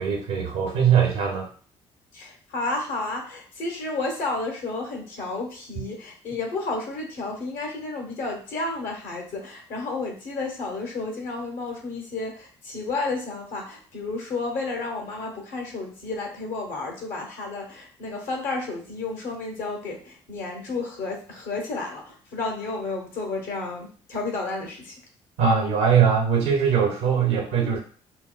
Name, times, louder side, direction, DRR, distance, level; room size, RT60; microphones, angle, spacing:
voice 1, 0.0-1.5 25.4-27.8, right 7 dB, 80° right, 0 dB, 0.6 m, -21 dB
voice 2, 2.1-24.9, left 3 dB, 70° left, 1 dB, 1.1 m, -31 dB
3.9 x 2.2 x 2.3 m, 0.42 s
hypercardioid pair, 50°, 14 cm